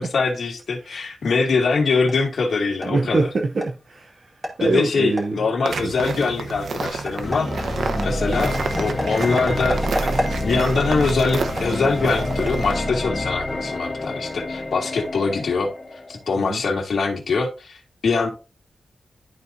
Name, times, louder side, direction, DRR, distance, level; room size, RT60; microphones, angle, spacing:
voice 1, 0.0-3.3 4.6-7.7 8.0-10.1 10.4-15.7 16.1-18.3, left 4 dB, 65° left, 2.1 m, -23 dB
sound 1, 1.9-13.2, equal, 15° right, 2.3 m, -35 dB
voice 2, 2.8-4.3 4.6-5.4 5.7-5.9 7.9-8.1 16.4-16.6, right 3 dB, 50° right, 0.7 m, -25 dB
sound 2, 5.6-12.8, right 4 dB, 80° right, 0.9 m, -29 dB
sound 3, 7.2-16.3, left 1 dB, 25° left, 0.9 m, -28 dB
12.0 x 4.2 x 2.6 m
wide cardioid pair, 140°, 0 cm